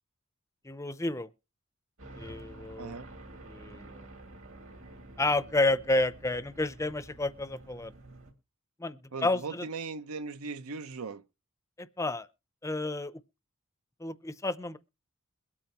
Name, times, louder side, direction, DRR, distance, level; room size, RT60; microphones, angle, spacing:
voice 1, 0.6-1.3 2.1-2.9 3.5-4.1 5.2-7.9 8.8-9.7 11.8-12.3 12.6-13.2 14.0-14.8, left 2 dB, 15° left, 0.6 m, -30 dB
sound 1, 2.0-8.3, right 1 dB, 65° right, 2.7 m, -49 dB
voice 2, 2.8-3.1 9.1-11.2, right 4 dB, 80° right, 0.8 m, -38 dB
22.0 x 8.7 x 2.9 m
head